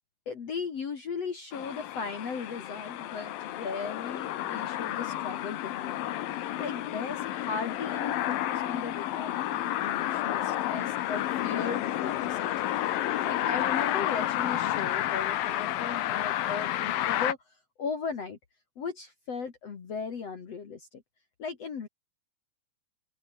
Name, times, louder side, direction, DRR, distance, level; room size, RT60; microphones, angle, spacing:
voice 1, 0.3-12.8 13.3-17.4 17.8-18.4 18.8-21.0 21.4-21.9, left 5 dB, 45° left, 3.2 m, -37 dB
sound 1, 1.5-17.3, left 13 dB, 75° left, 3.0 m, -31 dB
open air
omnidirectional pair, 4.2 m